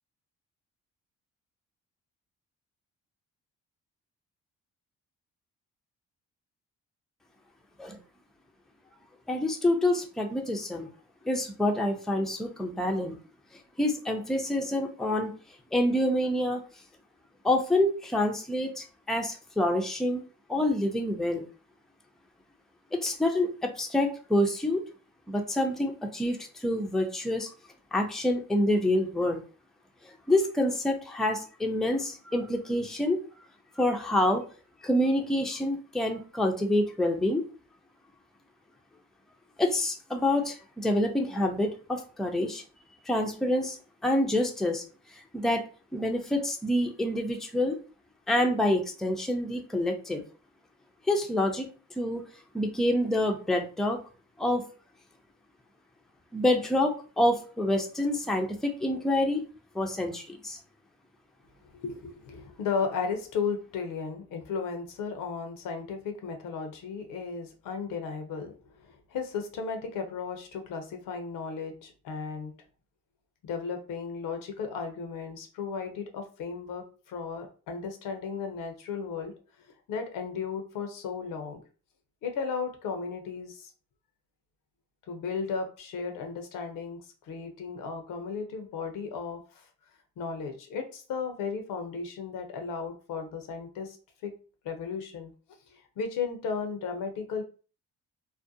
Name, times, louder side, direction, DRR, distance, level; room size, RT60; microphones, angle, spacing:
voice 1, 9.3-10.9 11.3-13.2 13.8-15.3 15.7-16.6 17.4-20.2 20.5-21.4 22.9-24.8 25.3-27.5 27.9-29.4 30.3-33.2 33.8-34.4 34.8-37.5 39.6-42.6 43.1-43.8 44.0-44.8 45.3-45.6 45.9-47.8 48.3-50.2 51.1-51.7 52.0-52.2 52.5-54.0 54.4-54.6 56.3-59.4 59.7-60.6, left 1 dB, ahead, 3 dB, 0.5 m, -27 dB
voice 2, 61.7-72.5 73.4-79.3 79.9-81.6 82.2-83.7 85.1-89.6 90.2-94.0 94.2-94.3 94.6-95.3 95.7-97.4, left 5 dB, 70° left, 5 dB, 0.7 m, -35 dB
2.4 x 2.1 x 2.6 m, 0.37 s
supercardioid pair, 55°, 34 cm